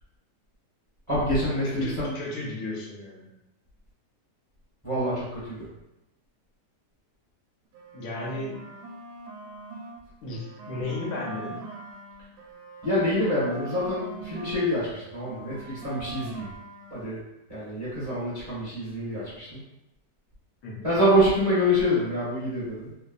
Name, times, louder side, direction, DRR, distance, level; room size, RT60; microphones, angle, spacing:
voice 1, 1.1-2.1 4.8-5.7 12.8-16.5 16.9-17.2 17.5-19.6 20.8-22.9, equal, 15° right, -10 dB, 0.9 m, -26 dB
voice 2, 1.6-3.3 7.9-8.7 10.2-11.6 20.6-20.9, left 2 dB, 75° left, -3 dB, 1.2 m, -34 dB
sound 1, 7.7-10.0 10.3-14.7 14.9-17.0, right 4 dB, 80° right, 1.2 m, -42 dB
3.2 x 2.1 x 2.4 m, 0.92 s
omnidirectional pair, 1.8 m